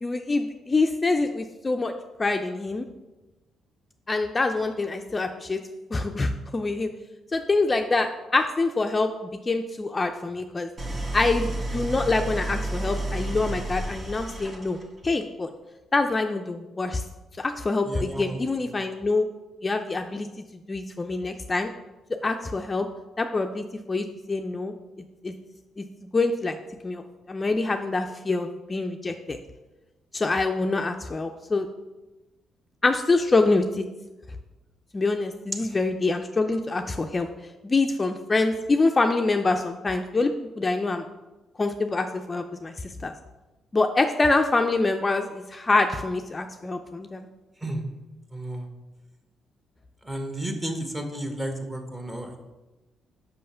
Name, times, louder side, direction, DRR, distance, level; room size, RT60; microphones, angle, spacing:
voice 1, 0.0-1.9 2.2-2.9 4.1-5.6 5.9-6.9 7.3-9.1 9.5-10.7 11.1-14.8 15.0-15.5 15.9-17.0 17.4-19.3 19.6-20.3 20.7-21.7 22.2-22.9 23.2-24.7 25.2-25.3 25.8-25.9 26.1-26.6 26.8-29.4 30.1-31.7 32.8-33.9 34.9-37.3 37.6-41.1 41.6-42.7 43.0-43.1 43.7-47.3, left 3 dB, 25° left, 5 dB, 0.4 m, -25 dB
Idling, 10.8-15.0, right 1 dB, 35° right, 1.3 m, -31 dB
voice 2, 17.8-18.4 18.7-18.8 35.7-35.8 47.6-47.9 48.3-48.7 50.0-52.4, right 1 dB, 15° right, 4 dB, 1.2 m, -32 dB
5.6 x 5.5 x 5.5 m, 1.1 s
cardioid pair, 90°, 0 cm